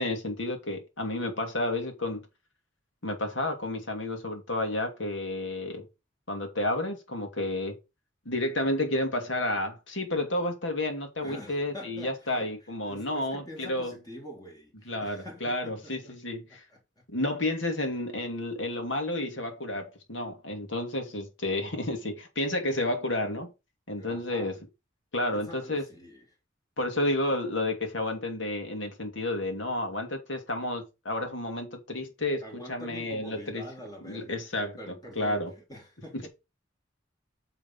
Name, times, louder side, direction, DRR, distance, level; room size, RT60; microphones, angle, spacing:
voice 1, 0.0-2.2 3.0-5.9 6.3-7.8 8.3-13.9 14.9-16.6 17.1-23.5 23.9-24.5 25.1-25.8 26.8-32.4 32.7-33.6 34.0-34.7 35.2-35.5 36.1-36.3, left 1 dB, 75° left, 2.4 m, -31 dB
voice 2, 11.2-12.5 12.8-16.8 23.9-24.6 25.3-26.4 32.4-36.3, equal, 20° left, 3.2 m, -45 dB
9.1 x 4.1 x 5.6 m
head